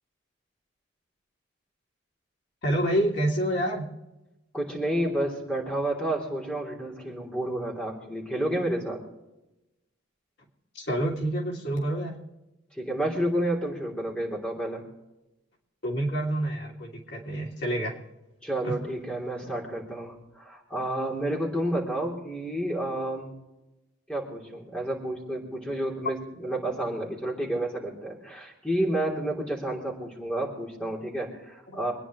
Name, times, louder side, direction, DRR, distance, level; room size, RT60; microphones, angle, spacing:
voice 1, 2.6-3.9 10.7-12.2 15.8-17.9 18.6-18.8, right 1 dB, 60° left, -1 dB, 2.9 m, -28 dB
voice 2, 4.5-9.0 12.8-14.8 18.4-23.3 24.1-31.9, right 1 dB, 5° left, -2 dB, 3.2 m, -30 dB
26.5 x 10.0 x 3.1 m, 0.98 s
head